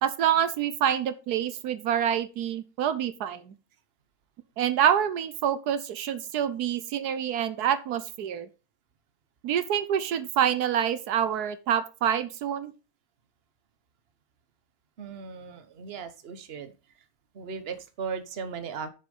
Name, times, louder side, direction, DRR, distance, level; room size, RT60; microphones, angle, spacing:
voice 1, 0.0-3.5 4.6-8.5 9.4-12.7, right 9 dB, 85° right, 13 dB, 1.4 m, -27 dB
voice 2, 15.0-16.7 17.3-18.9, right 6 dB, 45° right, 10 dB, 1.2 m, -37 dB
7.0 x 6.9 x 5.4 m, 0.32 s
omnidirectional pair, 1.6 m